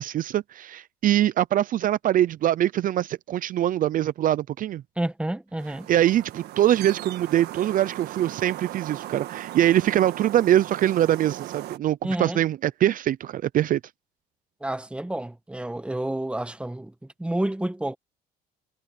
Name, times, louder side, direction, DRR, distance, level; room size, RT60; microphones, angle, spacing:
voice 1, 0.0-4.8 5.9-13.8, right 12 dB, 55° right, 0.6 m, -23 dB
voice 2, 5.0-5.9 12.0-12.4 14.6-18.0, right 1 dB, 5° right, 1.4 m, -30 dB
sound 1, 5.6-11.8, right 14 dB, 75° right, 1.5 m, -38 dB
cardioid pair, 110°, 17 cm